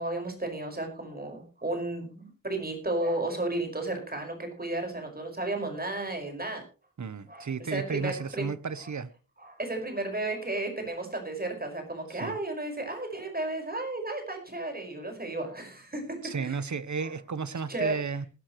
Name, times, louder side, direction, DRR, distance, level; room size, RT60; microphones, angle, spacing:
voice 1, 0.0-6.6 7.3-8.5 8.8-8.9 9.4-16.6 17.0-17.1 17.7-18.0, right 2 dB, 30° right, 5.3 m, -33 dB
voice 2, 7.0-9.1 12.2-12.3 16.2-18.3, right 5 dB, 65° right, 1.0 m, -33 dB
19.5 x 11.5 x 3.1 m
wide cardioid pair, 95°, 31 cm